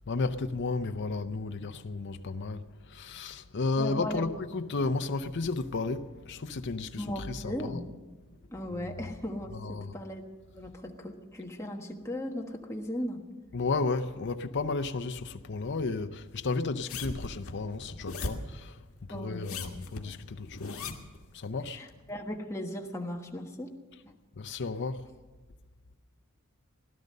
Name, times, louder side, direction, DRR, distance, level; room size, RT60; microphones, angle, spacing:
voice 1, 0.0-7.8 9.5-9.9 13.5-18.8 19.1-21.0 21.3-21.8 24.4-25.1, left 3 dB, 55° left, 0.7 m, -33 dB
voice 2, 3.8-4.3 7.0-7.8 8.5-10.2 10.5-13.2 19.1-19.6 21.7-23.7 24.0-24.1, left 1 dB, 15° left, 1.4 m, -37 dB
sound 1, 16.9-18.5 19.3-21.2 21.9-22.0, left 3 dB, 75° left, 1.8 m, -38 dB
17.0 x 12.0 x 6.6 m
head